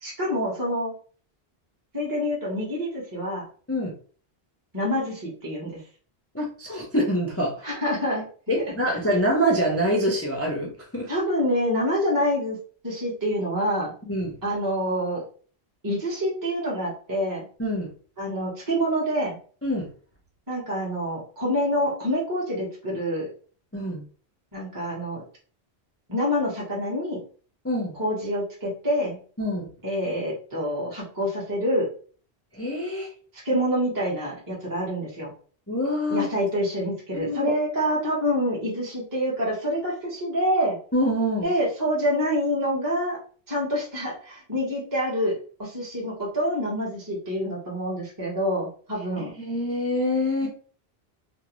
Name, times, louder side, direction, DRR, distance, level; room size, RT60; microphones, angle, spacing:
voice 1, 0.0-0.9 1.9-3.4 4.7-5.8 7.6-8.2 8.9-9.0 11.1-12.6 12.8-13.9 14.4-15.2 15.8-17.5 18.2-19.4 20.5-23.3 24.5-25.2 26.1-27.2 28.0-29.2 29.8-31.9 33.3-35.3 36.1-40.8 41.4-43.2 43.5-49.3 50.4-50.5, equal, 20° right, -6 dB, 0.8 m, -26 dB
voice 2, 6.3-7.7 8.5-11.1 14.0-14.3 17.6-17.9 19.6-19.9 23.7-24.0 27.6-27.9 29.4-29.7 32.5-33.1 35.7-36.3 37.1-37.5 40.9-41.5 49.4-50.5, equal, 25° left, -2 dB, 0.3 m, -25 dB
2.5 x 2.0 x 2.9 m, 0.42 s
omnidirectional pair, 1.1 m